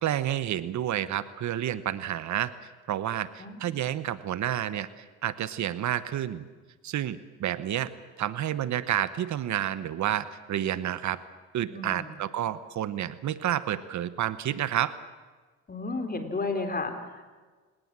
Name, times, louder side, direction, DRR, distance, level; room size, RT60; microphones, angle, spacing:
voice 1, 0.0-2.5 2.9-6.5 6.8-7.9 8.2-11.2 11.5-14.9, right 11 dB, 70° right, 14 dB, 1.1 m, -30 dB
voice 2, 11.7-12.1 15.7-17.2, left 3 dB, 30° left, 6 dB, 3.7 m, -32 dB
29.5 x 18.0 x 7.5 m, 1.4 s
cardioid pair, 90°, 30 cm